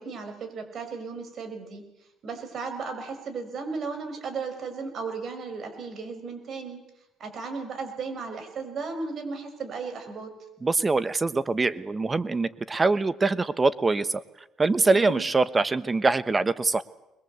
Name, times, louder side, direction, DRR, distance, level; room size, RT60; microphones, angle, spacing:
voice 1, 0.0-1.8 2.2-6.8 7.2-10.3 14.9-15.3, right 4 dB, 50° right, 6 dB, 5.7 m, -35 dB
voice 2, 10.6-14.1 14.6-16.8, right 3 dB, 20° right, 15 dB, 1.2 m, -23 dB
22.5 x 21.5 x 8.0 m, 0.93 s
cardioid pair, 105°, 0 cm